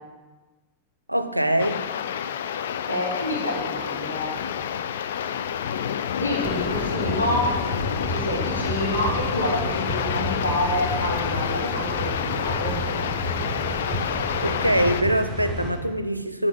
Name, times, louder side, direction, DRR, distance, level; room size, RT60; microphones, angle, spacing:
voice 1, 1.1-1.9 14.4-16.5, equal, 90° right, 10 dB, 0.5 m, -23 dB
sound 1, 1.6-15.0, left 8 dB, 60° left, 0.4 m, -29 dB
voice 2, 2.9-4.4 6.2-7.6 8.1-12.8, left 1 dB, 75° left, -4 dB, 2.7 m, -28 dB
sound 2, 6.4-15.7, equal, 15° left, 3.2 m, -31 dB
9.7 x 4.3 x 7.6 m, 1.2 s
figure-of-eight pair, 90°, 0 cm